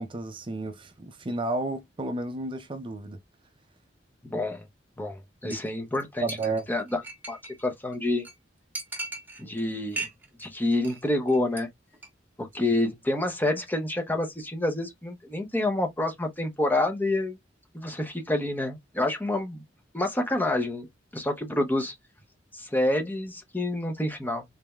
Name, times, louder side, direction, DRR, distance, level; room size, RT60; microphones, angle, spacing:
voice 1, 0.0-3.2 5.4-5.6 6.2-6.7, right 2 dB, 25° right, 0.5 m, -32 dB
voice 2, 4.3-4.6 5.0-6.3 6.7-7.0 7.3-8.3 9.4-10.1 10.4-11.7 12.4-17.4 17.7-19.6 19.9-20.9 21.1-21.9 22.5-24.4, left 1 dB, 10° left, 0.7 m, -28 dB
Chink clink, 5.5-5.7 5.9-6.0 6.3-7.6 7.9-8.0 8.2-8.3 8.7-9.6 9.9-10.5 10.7-11.0 11.3-11.6 11.9-12.1, right 3 dB, 10° right, 1.3 m, -37 dB
4.0 x 3.4 x 2.2 m
head